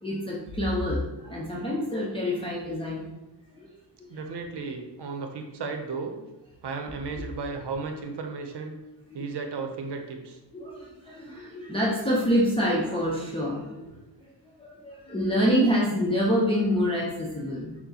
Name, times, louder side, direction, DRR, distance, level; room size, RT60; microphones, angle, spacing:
voice 1, 0.0-3.0 10.5-13.9 14.6-17.8, equal, 10° left, -5 dB, 0.7 m, -26 dB
voice 2, 4.1-6.2 6.6-8.8 9.1-10.4, right 4 dB, 65° right, 4 dB, 0.7 m, -34 dB
5.8 x 2.2 x 2.8 m, 1.1 s
cardioid pair, 50°, 45 cm